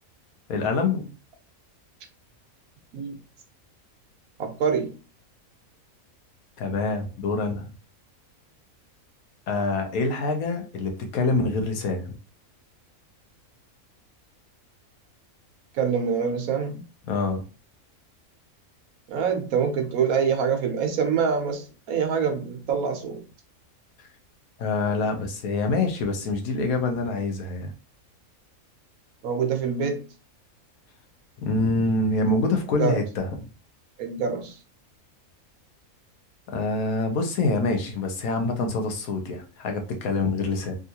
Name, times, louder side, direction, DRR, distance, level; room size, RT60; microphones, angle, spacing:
voice 1, 0.5-1.1 6.6-7.7 9.5-12.2 17.1-17.4 24.6-27.7 31.4-33.4 36.5-40.8, left 3 dB, 80° left, 1.2 m, -26 dB
voice 2, 4.4-4.9 15.7-16.8 19.1-23.2 29.2-30.0 32.8-33.0 34.0-34.5, right 6 dB, 85° right, 1.2 m, -25 dB
3.6 x 2.4 x 2.7 m
omnidirectional pair, 1.5 m